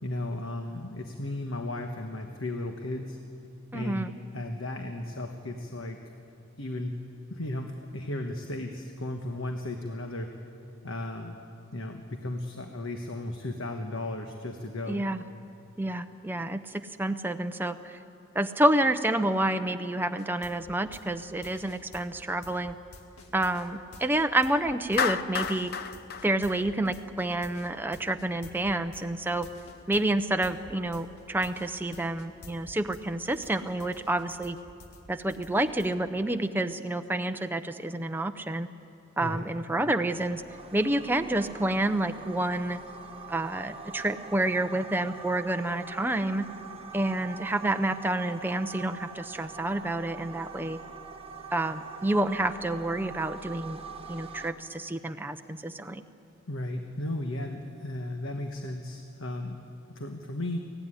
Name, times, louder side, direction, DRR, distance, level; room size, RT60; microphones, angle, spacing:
voice 1, 0.0-3.2 3.7-6.0 6.6-6.9 7.3-10.3 10.8-11.4 11.7-15.0 39.2-39.5 56.5-59.6 59.9-60.6, left 1 dB, 60° left, 4 dB, 1.3 m, -35 dB
voice 2, 3.7-4.1 14.9-15.2 15.8-18.0 18.3-22.8 23.3-25.7 26.2-29.5 29.9-34.6 35.1-38.7 39.2-40.4 40.7-42.8 43.3-46.4 46.9-50.8 51.5-53.8 54.1-56.0, right 1 dB, 10° right, 7 dB, 0.6 m, -29 dB
sound 1, 20.2-33.0 33.3-35.9, left 2 dB, 90° left, 1.9 m, -50 dB
Clapping, 25.0-27.3, left 6 dB, 45° left, 0.6 m, -31 dB
sound 2, 40.1-54.5, right 5 dB, 25° right, 1.3 m, -44 dB
23.5 x 16.5 x 9.9 m, 2.7 s
head